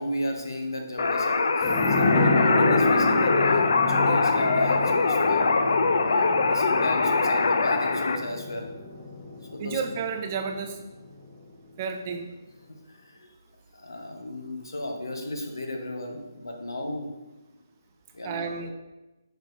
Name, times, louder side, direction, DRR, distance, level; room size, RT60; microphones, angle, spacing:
voice 1, 0.0-5.5 6.0-8.7 9.5-9.8 12.7-13.3 13.7-17.1 18.1-18.5, left 1 dB, 90° left, 3 dB, 0.8 m, -34 dB
sound 1, 1.0-8.2, left 4 dB, 65° left, 0.3 m, -23 dB
sound 2, 1.6-10.9 11.2-11.3, left 2 dB, 30° left, 0.8 m, -28 dB
voice 2, 9.6-10.8 11.8-12.3 18.2-18.7, right 6 dB, 30° right, 5 dB, 0.4 m, -31 dB
4.9 x 4.4 x 2.4 m, 1.1 s
hypercardioid pair, 155°, 2 cm